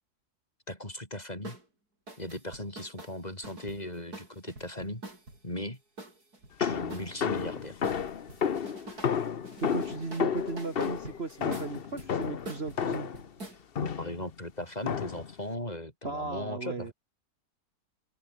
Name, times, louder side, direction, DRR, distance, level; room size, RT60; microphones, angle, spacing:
voice 1, 0.7-1.6 2.2-5.0 5.4-5.8 6.6-7.8 13.7-16.9, left 1 dB, 25° left, 5.4 m, -38 dB
sound 1, 1.4-1.6 2.1-5.4 6.0-7.5 7.8-9.2 9.4-13.6, right 2 dB, 70° right, 7.2 m, -46 dB
sound 2, 6.6-13.3 13.8-14.2 14.9-15.3, left 7 dB, 45° left, 1.0 m, -32 dB
voice 2, 9.6-13.1 16.0-16.9, right 3 dB, 40° right, 2.2 m, -36 dB
open air
omnidirectional pair, 1.7 m